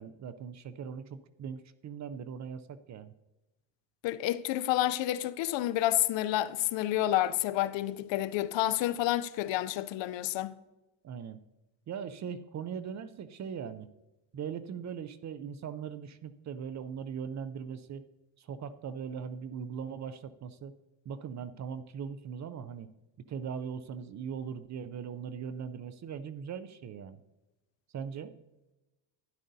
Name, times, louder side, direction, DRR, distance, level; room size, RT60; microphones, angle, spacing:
voice 1, 0.0-3.1 11.0-11.4 11.9-13.9 14.3-18.0 18.4-20.7 21.1-22.9 23.3-27.2 27.9-28.4, right 7 dB, 40° right, 0.4 m, -40 dB
voice 2, 4.0-10.5, left 14 dB, 65° left, 0.6 m, -29 dB
12.5 x 10.5 x 2.7 m
cardioid pair, 125°, 48 cm